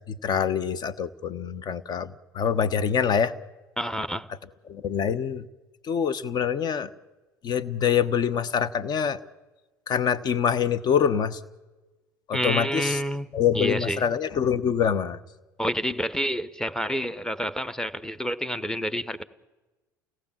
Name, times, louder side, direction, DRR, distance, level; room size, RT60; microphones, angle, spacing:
voice 1, 0.1-3.3 4.7-5.4 5.8-6.9 7.4-9.2 9.9-11.4 12.3-13.0 13.3-15.2, left 7 dB, 45° left, 1.2 m, -25 dB
voice 2, 3.8-4.3 12.3-13.3 13.5-14.0 15.6-19.2, equal, 5° left, 1.1 m, -28 dB
30.0 x 17.5 x 7.4 m
hypercardioid pair, 65°, 10 cm